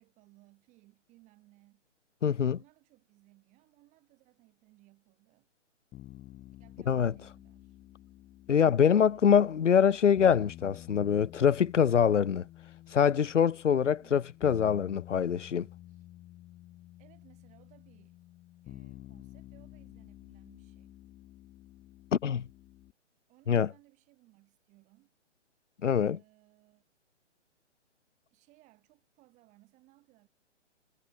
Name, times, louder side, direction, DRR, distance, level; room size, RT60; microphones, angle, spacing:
voice 1, 0.0-1.8 2.5-5.5 6.6-7.8 9.1-9.7 10.9-11.0 13.8-14.2 15.9-16.1 17.0-18.2 18.6-21.0 23.3-25.2 26.0-26.8 28.3-30.3, right 19 dB, 20° right, 4.4 m, -63 dB
voice 2, 2.2-2.6 6.9-7.1 8.5-12.4 12.9-15.7 22.1-22.5 23.5-23.7 25.8-26.2, left 8 dB, 80° left, 0.6 m, -24 dB
sound 1, 5.9-22.9, left 15 dB, 15° left, 2.1 m, -51 dB
figure-of-eight pair, 130°, 36 cm